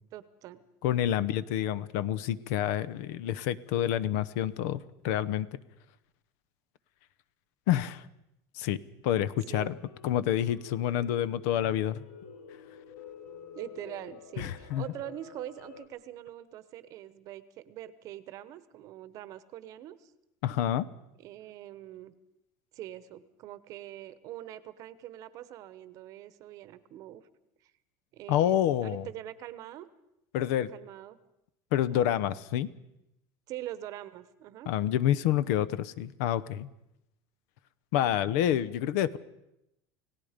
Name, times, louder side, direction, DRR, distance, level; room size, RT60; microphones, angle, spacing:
voice 1, 0.1-0.6 9.5-9.7 13.5-20.1 21.2-22.1 22.7-27.2 27.6-27.7 28.1-29.9 30.7-31.2 31.9-32.1 33.5-34.7, right 13 dB, 40° right, 14 dB, 1.1 m, -43 dB
voice 2, 0.8-5.5 7.7-8.1 8.5-8.8 9.0-9.8 10.0-12.0 14.4-14.8 20.4-20.9 28.3-29.1 30.3-30.7 31.7-32.7 34.7-36.7 37.9-39.2, left 11 dB, 65° left, 18 dB, 0.9 m, -28 dB
sound 1, 9.2-15.9, left 7 dB, 85° left, 3.8 m, -50 dB
29.5 x 17.5 x 5.2 m, 0.85 s
cardioid pair, 170°, 9 cm